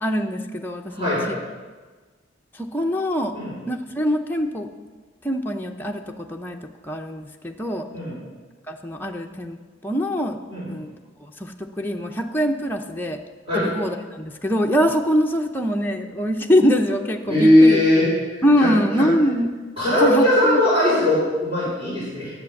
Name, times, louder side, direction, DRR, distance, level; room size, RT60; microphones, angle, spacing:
voice 1, 0.0-1.4 2.5-3.4 3.7-4.7 5.2-6.6 6.8-7.9 8.7-9.6 9.8-10.4 10.7-10.9 11.2-13.2 13.5-17.8 18.4-19.5 20.0-20.6, equal, 10° left, 1 dB, 0.7 m, -23 dB
voice 2, 0.9-1.3 3.3-3.5 7.9-8.2 10.5-10.7 13.5-13.7 17.3-18.7 19.0-19.1 19.8-22.3, left 1 dB, 30° right, -9 dB, 4.6 m, -19 dB
10.5 x 7.7 x 7.1 m, 1.3 s
head